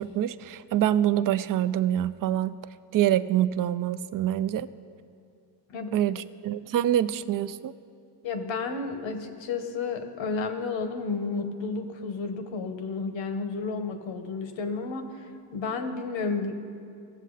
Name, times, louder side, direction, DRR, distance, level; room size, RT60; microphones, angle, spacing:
voice 1, 0.0-2.5 2.9-4.7 5.9-7.7, right 11 dB, 50° right, 15 dB, 0.4 m, -25 dB
voice 2, 8.2-16.5, left 4 dB, 75° left, 7 dB, 1.1 m, -32 dB
16.5 x 7.4 x 3.9 m, 2.4 s
cardioid pair, 70°, 45 cm